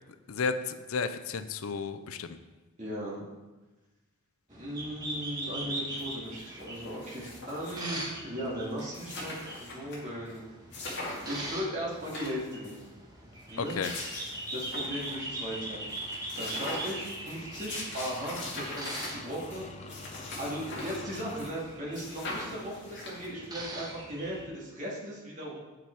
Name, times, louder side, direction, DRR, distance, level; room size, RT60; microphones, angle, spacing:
voice 1, 0.3-2.4 13.6-13.9, left 5 dB, 75° left, 11 dB, 0.5 m, -33 dB
voice 2, 2.8-3.2 4.5-10.5 11.0-12.8 13.5-13.8 14.5-15.9 16.1-20.1 20.4-25.6, equal, 35° right, -6 dB, 2.4 m, -37 dB
sound 1, 4.5-24.4, right 1 dB, 15° right, 1.1 m, -42 dB
sound 2, 6.0-6.1 6.3-8.0 8.4-8.5 8.7-10.0 10.3-10.4 10.7-11.5 11.9-12.8 13.5-15.1 15.5-15.6 15.9-21.6 21.9-23.4, left 2 dB, 50° left, 2.2 m, -41 dB
sound 3, 14.9-21.5, left 4 dB, 30° left, 0.5 m, -48 dB
8.5 x 6.7 x 4.7 m, 1.2 s
head